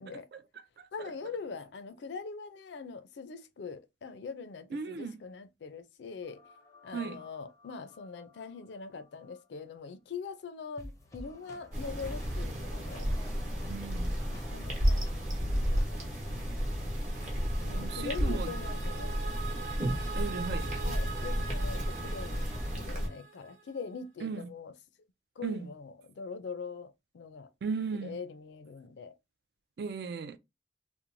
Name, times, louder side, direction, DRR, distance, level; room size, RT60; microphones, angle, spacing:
voice 1, 0.3-1.1 4.7-5.2 6.9-7.2 13.7-14.1 17.7-18.6 20.2-20.7 24.2-24.5 25.4-25.7 27.6-28.2 29.8-30.4, right 5 dB, 60° right, 0.3 m, -37 dB
voice 2, 0.9-6.4 6.8-13.1 14.3-15.1 15.4-16.5 17.6-19.2 20.8-22.5 22.7-24.7 25.4-25.8 26.2-26.9 27.1-27.5 28.0-29.1, left 5 dB, 80° left, 0.4 m, -42 dB
sound 1, 6.2-8.9 9.3-9.4 10.8-22.8, left 1 dB, 20° left, 0.4 m, -50 dB
sound 2, 11.7-23.1, equal, 40° right, 0.9 m, -32 dB
sound 3, 16.7-23.8, right 6 dB, 85° right, 0.7 m, -44 dB
3.0 x 2.1 x 2.5 m
head